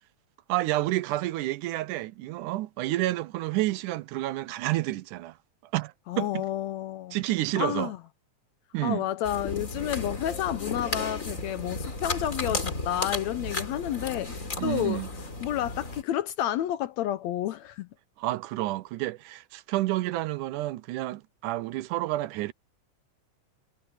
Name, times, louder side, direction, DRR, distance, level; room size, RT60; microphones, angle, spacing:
voice 1, 0.5-5.3 5.7-6.5 7.1-7.9 8.7-9.0 14.6-15.1 18.2-22.5, right 17 dB, 80° right, 2.2 m, -29 dB
voice 2, 6.1-7.2 7.6-8.0 8.8-15.0 15.4-17.9, left 12 dB, 75° left, 1.7 m, -30 dB
sound 1, 9.2-16.0, left 2 dB, 25° left, 3.6 m, -34 dB
omnidirectional pair, 3.6 m